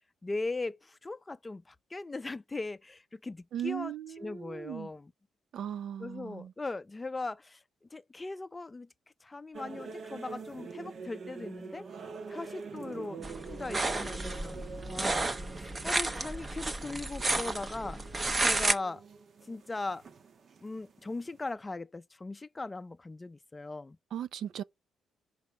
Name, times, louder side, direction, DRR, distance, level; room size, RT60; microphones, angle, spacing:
voice 1, 0.2-5.1 6.0-7.6 7.9-8.9 9.2-11.9 12.3-15.2 15.6-18.0 18.4-19.0 19.5-20.0 20.6-24.0, left 3 dB, 20° left, 0.5 m, -39 dB
voice 2, 3.5-4.9 5.5-6.5 24.1-24.6, right 10 dB, 70° right, 0.5 m, -38 dB
sound 1, 9.5-21.4, right 5 dB, 50° right, 1.2 m, -46 dB
sound 2, 13.2-18.7, right 2 dB, 25° right, 1.2 m, -32 dB
5.5 x 4.9 x 6.0 m
cardioid pair, 90°, 0 cm